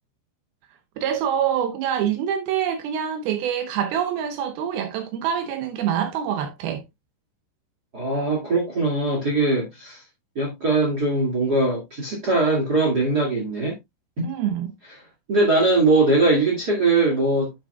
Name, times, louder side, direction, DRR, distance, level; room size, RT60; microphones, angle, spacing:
voice 1, 1.0-6.8 14.2-14.7, right 9 dB, 90° right, 2.1 m, -25 dB
voice 2, 7.9-10.0 10.3-13.7 14.2-14.3 15.3-17.7, right 2 dB, 55° right, 1.1 m, -21 dB
9.0 x 7.8 x 2.2 m
omnidirectional pair, 5.6 m